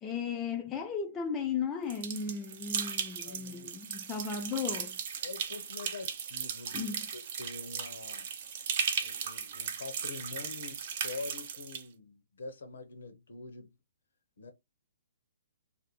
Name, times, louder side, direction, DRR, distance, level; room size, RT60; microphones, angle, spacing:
voice 1, 0.0-5.0 6.7-7.1, left 6 dB, 20° left, 0.4 m, -35 dB
sound 1, 1.9-11.8, right 7 dB, 50° right, 0.5 m, -37 dB
voice 2, 3.2-3.9 5.2-8.3 9.0-13.7 14.4-14.5, left 3 dB, 70° left, 0.7 m, -45 dB
2.5 x 2.1 x 2.9 m
figure-of-eight pair, 125°, 0 cm